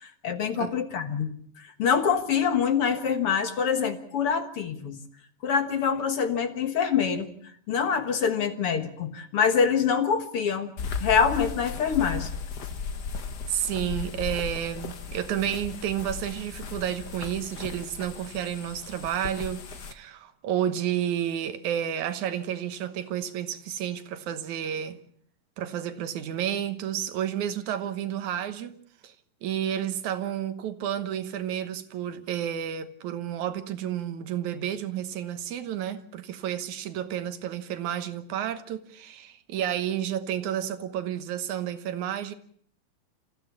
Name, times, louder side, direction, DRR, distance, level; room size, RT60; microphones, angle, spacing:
voice 1, 0.0-5.0 5.4-7.3 7.7-10.7 11.0-12.3, left 6 dB, 55° left, 1.9 m, -25 dB
sound 1, 10.8-19.9, left 5 dB, 75° left, 0.9 m, -36 dB
voice 2, 13.5-25.0 25.6-28.8 29.0-29.1 29.4-42.3, right 10 dB, 70° right, 2.4 m, -31 dB
28.0 x 15.0 x 7.2 m
omnidirectional pair, 3.8 m